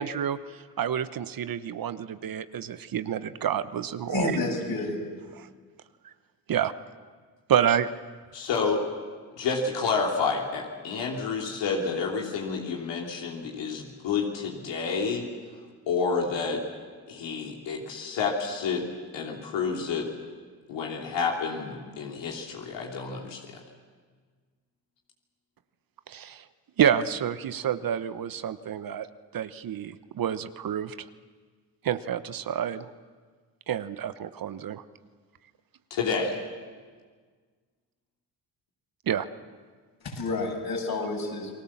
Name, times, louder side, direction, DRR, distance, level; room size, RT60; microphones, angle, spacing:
voice 1, 0.0-4.4 5.3-5.5 6.5-6.7 7.5-7.9 26.1-26.5 26.8-29.1 29.3-31.1 31.8-32.9 33.7-34.8 39.1-39.3, right 9 dB, 50° right, 13 dB, 1.0 m, -28 dB
voice 2, 4.1-5.0 40.0-41.5, left 3 dB, 55° left, 1 dB, 7.4 m, -29 dB
voice 3, 8.3-8.8 9.4-15.3 15.9-16.6 17.1-18.9 19.1-20.1 20.7-23.4 35.9-36.4, left 5 dB, 75° left, -1 dB, 3.2 m, -29 dB
29.5 x 20.0 x 7.3 m, 1.5 s
supercardioid pair, 65°, 44 cm